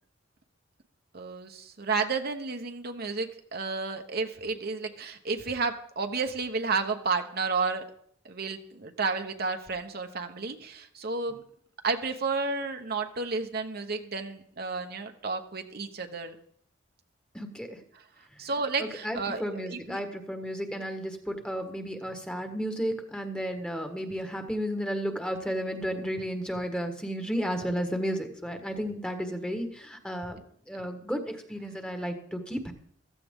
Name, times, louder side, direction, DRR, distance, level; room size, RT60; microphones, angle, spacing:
voice 1, 1.1-7.8 8.2-11.4 11.8-16.4 17.9-18.0 18.4-20.0, right 4 dB, 55° right, 5 dB, 1.2 m, -31 dB
voice 2, 17.3-17.8 18.8-32.7, equal, 5° left, 5 dB, 1.5 m, -33 dB
15.0 x 14.0 x 3.7 m, 0.64 s
head